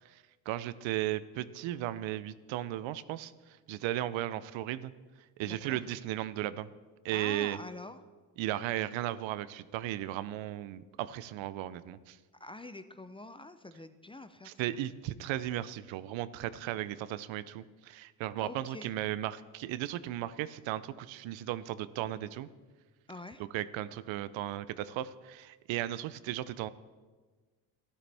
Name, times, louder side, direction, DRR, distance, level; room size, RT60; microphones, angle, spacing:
voice 1, 0.5-3.3 3.7-4.9 5.4-6.7 7.0-7.6 8.4-12.2 14.4-22.5 23.5-26.7, right 13 dB, 75° right, 16 dB, 0.6 m, -35 dB
voice 2, 5.4-5.8 7.1-8.0 12.4-14.8 18.4-18.9 23.1-23.4, left 2 dB, 10° left, 10 dB, 0.4 m, -46 dB
12.5 x 11.5 x 3.4 m, 1.4 s
cardioid pair, 85°, 46 cm